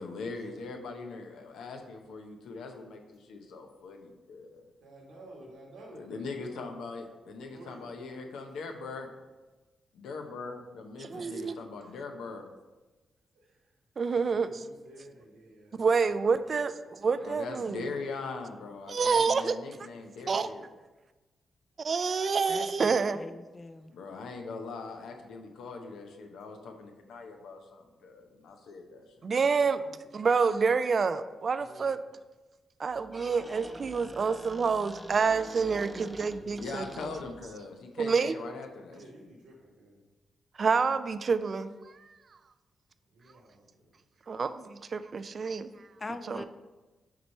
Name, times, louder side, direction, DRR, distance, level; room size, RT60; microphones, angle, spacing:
voice 1, 0.0-4.6 5.9-9.1 9.9-12.5 17.2-20.7 23.9-29.2 36.6-39.2, left 4 dB, 85° left, 4 dB, 0.7 m, -41 dB
voice 2, 4.8-6.7 7.2-8.0 8.5-8.6 11.1-11.4 13.4-13.6 14.3-15.8 16.0-16.2 16.5-16.6 29.6-30.0 31.6-31.9 33.1-34.5 35.5-37.1 38.9-40.0 43.1-43.6, right 1 dB, 85° right, -3 dB, 1.7 m, -52 dB
voice 3, 11.1-11.5 14.0-14.6 15.8-17.9 18.9-19.9 20.3-20.5 21.8-23.2 29.2-29.8 30.1-32.0 32.8-36.9 38.0-38.3 40.6-41.7 44.3-45.7 46.3-46.4, right 5 dB, 50° right, 12 dB, 0.3 m, -28 dB
voice 4, 22.5-23.9 46.0-46.4, left 2 dB, 35° left, 10 dB, 0.4 m, -42 dB
Squeak, 32.9-37.5, equal, ahead, 0.7 m, -47 dB
5.9 x 3.1 x 5.4 m, 1.2 s
supercardioid pair, 60°, 0 cm